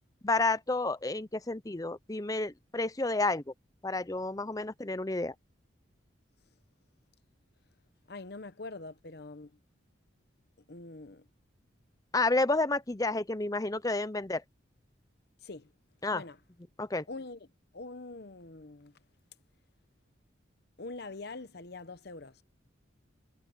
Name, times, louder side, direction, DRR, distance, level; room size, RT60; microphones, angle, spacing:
voice 1, 0.2-3.5 3.8-5.3 12.1-14.4 16.0-16.2 16.8-17.0, left 2 dB, 20° left, 0.7 m, -30 dB
voice 2, 8.1-9.6 10.7-11.3 15.4-15.7 16.1-16.4 17.1-17.5 17.7-19.0 20.8-22.4, left 3 dB, 55° left, 0.9 m, -44 dB
head